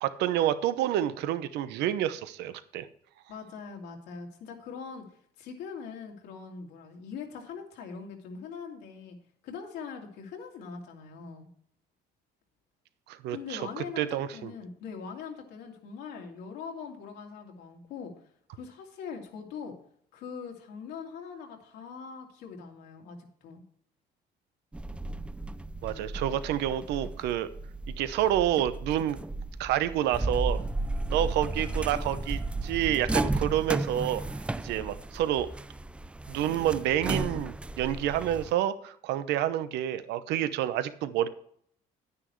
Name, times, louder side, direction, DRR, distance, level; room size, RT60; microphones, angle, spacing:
voice 1, 0.0-2.9 13.1-14.5 25.8-27.5 28.0-29.2 29.6-30.6 31.1-34.2 34.6-35.5 36.3-41.3, right 11 dB, 85° right, 13 dB, 0.8 m, -28 dB
voice 2, 3.3-5.0 5.4-9.2 9.4-11.5 13.3-18.1 18.5-19.7 20.1-23.6 34.7-34.9, left 6 dB, 85° left, 1 dB, 2.6 m, -42 dB
sound 1, 24.7-38.5, right 2 dB, 5° right, 0.3 m, -34 dB
10.0 x 9.7 x 3.1 m, 0.63 s
cardioid pair, 110°, 17 cm